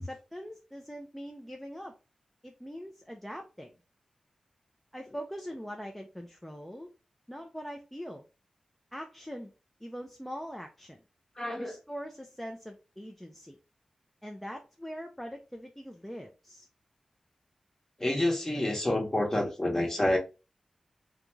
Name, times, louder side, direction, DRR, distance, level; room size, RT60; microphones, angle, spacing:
voice 1, 0.0-1.9 2.4-3.7 4.9-6.9 7.3-8.2 8.9-9.5 9.8-11.0 11.6-13.6 14.2-16.7, equal, 5° left, 0.4 m, -42 dB
voice 2, 11.4-11.7 18.0-20.2, left 1 dB, 20° left, 0.9 m, -28 dB
2.4 x 2.2 x 3.0 m
cardioid pair, 60°, 2 cm